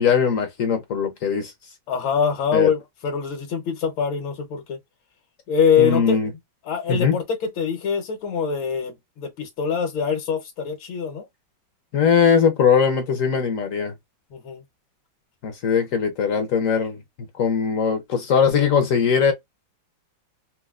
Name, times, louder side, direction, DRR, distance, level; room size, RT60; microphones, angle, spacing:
voice 1, 0.0-1.5 2.5-2.7 5.8-6.3 6.9-7.2 11.9-13.9 15.4-17.0 17.3-19.3, left 6 dB, 70° left, 0.7 m, -20 dB
voice 2, 1.9-4.8 5.5-6.2 6.6-11.3 14.3-14.6, left 6 dB, 90° left, 1.7 m, -24 dB
4.3 x 2.1 x 2.3 m
omnidirectional pair, 2.1 m